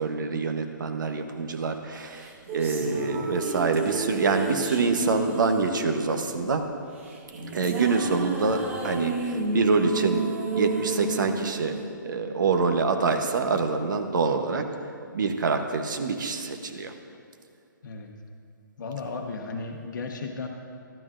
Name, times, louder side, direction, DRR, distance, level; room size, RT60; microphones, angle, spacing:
voice 1, 0.0-6.7 7.5-10.2 10.5-11.8 12.0-14.7 15.1-16.9, right 4 dB, 65° right, 6 dB, 0.8 m, -26 dB
sound 1, 2.1-12.5, right 3 dB, 40° right, 1.3 m, -32 dB
voice 2, 2.8-3.3 17.8-18.1 18.8-20.5, left 4 dB, 65° left, 2 dB, 0.9 m, -35 dB
12.5 x 12.0 x 2.5 m, 2.3 s
hypercardioid pair, 165°, 11 cm